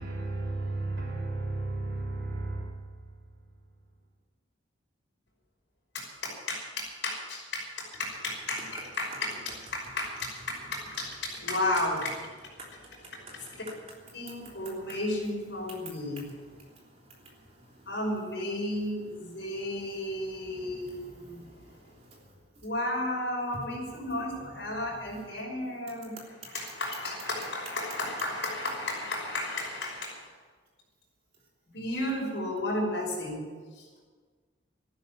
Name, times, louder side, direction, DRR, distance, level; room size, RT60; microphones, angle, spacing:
voice 1, 0.0-3.5, right 2 dB, 70° right, 3.5 m, -34 dB
voice 2, 5.9-9.3 9.7-12.2 14.1-16.2 17.9-21.4 22.6-26.1 26.5-30.3 31.7-33.4 33.8-34.0, left 1 dB, 65° left, 5.6 m, -33 dB
voice 3, 10.5-11.4 12.6-22.7 23.5-25.2 26.2-26.3, right 1 dB, 30° right, 3.4 m, -51 dB
14.0 x 12.5 x 7.6 m
head